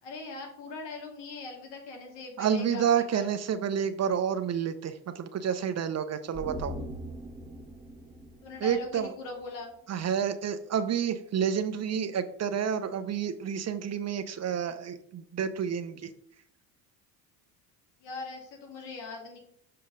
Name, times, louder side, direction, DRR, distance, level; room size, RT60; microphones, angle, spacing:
voice 1, 0.0-3.3 8.4-9.7 18.0-19.4, left 3 dB, 75° left, 1 dB, 2.2 m, -41 dB
voice 2, 2.4-6.8 8.6-9.1 9.9-16.1, right 8 dB, 35° right, 11 dB, 0.7 m, -29 dB
sound 1, 6.3-9.7 10.0-10.1, equal, 10° right, 1.2 m, -42 dB
6.7 x 5.4 x 3.8 m, 0.68 s
supercardioid pair, 80°, 44 cm